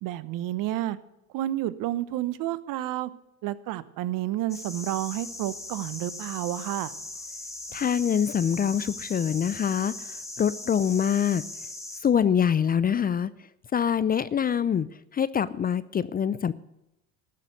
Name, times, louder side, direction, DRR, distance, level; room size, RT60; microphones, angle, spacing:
voice 1, 0.0-1.0 1.3-3.1 3.4-6.9, right 14 dB, 60° right, 17 dB, 0.9 m, -30 dB
sound 1, 4.5-12.0, left 2 dB, 10° left, 2.0 m, -39 dB
voice 2, 7.7-11.4 12.0-13.3 13.7-14.9 15.1-16.5, left 8 dB, 25° left, 17 dB, 0.5 m, -25 dB
13.0 x 6.6 x 9.3 m, 0.88 s
hypercardioid pair, 80°, 37 cm